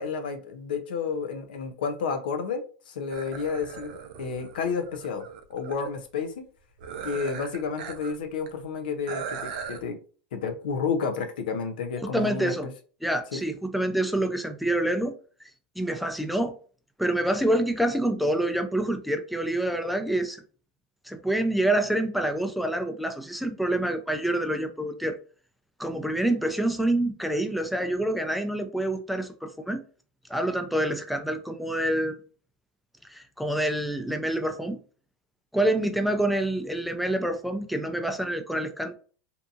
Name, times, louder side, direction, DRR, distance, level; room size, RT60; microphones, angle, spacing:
voice 1, 0.0-6.3 7.0-10.0 10.3-12.7 13.3-13.4, left 5 dB, 85° left, 0.5 m, -31 dB
sound 1, 3.1-5.9 6.8-8.2 8.5-8.6 9.1-9.8, right 6 dB, 75° right, 0.5 m, -38 dB
voice 2, 12.1-12.7 13.0-15.1 15.8-16.5 17.0-20.4 21.1-25.2 25.8-29.8 30.3-32.2 33.1-34.8 35.5-38.9, right 1 dB, ahead, 0.4 m, -27 dB
2.7 x 2.5 x 2.4 m
supercardioid pair, 115°, 5 cm